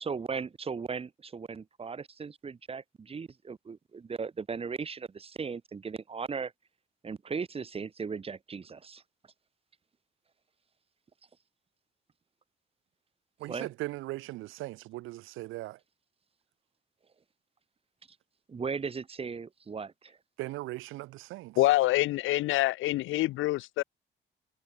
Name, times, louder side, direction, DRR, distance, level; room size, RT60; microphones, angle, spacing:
voice 1, 0.0-6.5 7.0-9.0 13.5-13.7 18.5-20.2, right 5 dB, 30° right, 0.9 m, -37 dB
voice 2, 13.4-15.8 20.4-21.6, right 18 dB, 85° right, 0.5 m, -39 dB
voice 3, 21.6-23.8, left 17 dB, 80° left, 0.5 m, -26 dB
cardioid pair, 90°, 20 cm